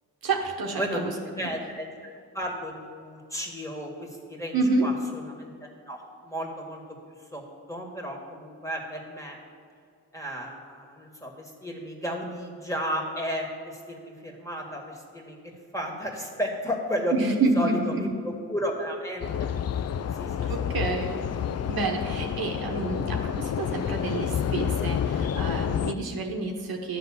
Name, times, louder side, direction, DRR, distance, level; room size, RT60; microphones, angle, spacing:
voice 1, 0.2-1.1 1.4-1.5 4.5-4.9 17.1-18.1 20.4-21.3 21.7-27.0, right 3 dB, 65° right, 2 dB, 1.1 m, -28 dB
voice 2, 0.8-6.8 7.3-7.4 7.7-9.4 10.1-17.1 17.5-19.5 20.1-20.7, equal, 10° left, 0 dB, 2.0 m, -33 dB
sound 1, 19.2-25.9, left 8 dB, 45° left, 0.4 m, -29 dB
11.0 x 3.9 x 7.3 m, 2.2 s
supercardioid pair, 45°, 38 cm